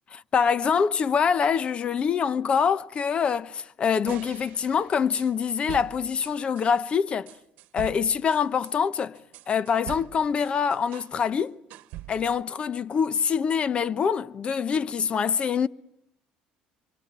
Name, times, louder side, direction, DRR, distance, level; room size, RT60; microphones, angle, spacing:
voice 1, 0.1-7.3 7.7-9.2 9.5-11.6 12.1-15.7, left 6 dB, 40° left, 1.0 m, -25 dB
sound 1, 4.1-6.7 7.3-11.1 11.4-12.4, right 15 dB, 75° right, 1.1 m, -43 dB
26.5 x 24.5 x 9.1 m
cardioid pair, 100°, 3 cm